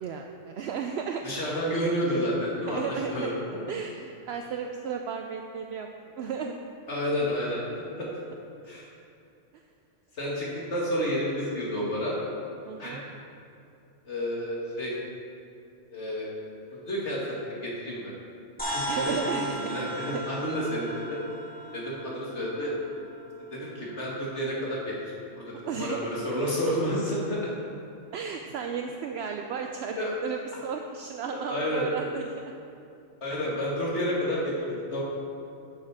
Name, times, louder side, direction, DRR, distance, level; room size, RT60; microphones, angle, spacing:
voice 1, 0.0-1.2 2.7-3.3 3.7-5.9 6.2-6.5 9.5-9.6 12.6-13.0 18.9-19.7 20.1-20.2 25.7-26.0 28.1-32.4, right 6 dB, 70° right, 4 dB, 0.8 m, -34 dB
voice 2, 1.2-3.4 6.9-7.6 8.0-8.1 8.6-8.9 10.1-12.2 12.8-13.0 14.0-14.9 15.9-16.3 16.7-18.1 18.6-21.2 21.7-22.7 23.4-27.5 30.0-30.2 31.5-31.8 33.2-35.0, equal, 75° left, -5 dB, 2.5 m, -30 dB
sound 1, 18.6-23.2, right 1 dB, 5° left, 2.6 m, -36 dB
11.5 x 6.6 x 4.9 m, 2.7 s
omnidirectional pair, 1.2 m